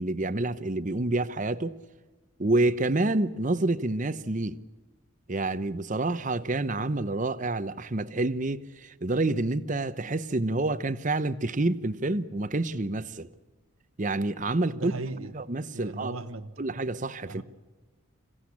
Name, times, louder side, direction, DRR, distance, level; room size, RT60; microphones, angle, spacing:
voice 1, 0.0-1.8 2.4-4.6 5.3-13.3 14.0-14.9 15.3-16.2 16.6-17.4, right 2 dB, 35° right, 0.8 m, -28 dB
voice 2, 14.7-15.3 15.7-16.6 17.3-17.4, right 2 dB, 80° right, 1.4 m, -37 dB
26.5 x 16.5 x 8.6 m
head